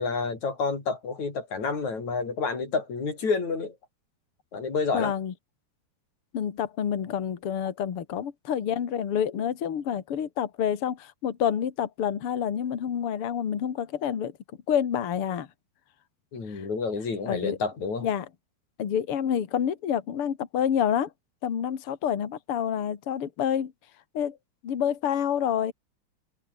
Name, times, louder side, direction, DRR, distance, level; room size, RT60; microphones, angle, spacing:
voice 1, 0.0-3.7 4.5-5.1 16.3-18.1, left 4 dB, 35° left, 6.5 m, -29 dB
voice 2, 4.9-5.3 6.3-14.3 14.7-15.5 16.5-16.6 17.2-17.6 18.0-18.2 18.8-21.1 21.4-23.7 24.1-24.4 24.6-25.7, left 9 dB, 80° left, 1.2 m, -28 dB
omnidirectional pair, 5.9 m